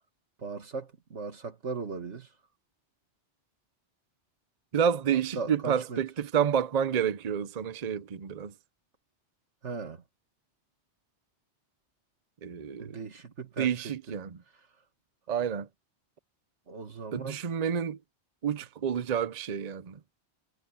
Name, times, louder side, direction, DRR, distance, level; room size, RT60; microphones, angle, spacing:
voice 1, 0.4-2.3 5.4-6.0 9.6-10.0 12.8-13.9 16.7-17.4, right 4 dB, 90° right, 2.2 m, -38 dB
voice 2, 4.7-8.5 12.4-13.0 13.6-14.4 15.3-15.7 17.1-18.0 18.4-20.0, right 8 dB, 40° right, 0.7 m, -29 dB
omnidirectional pair, 1.2 m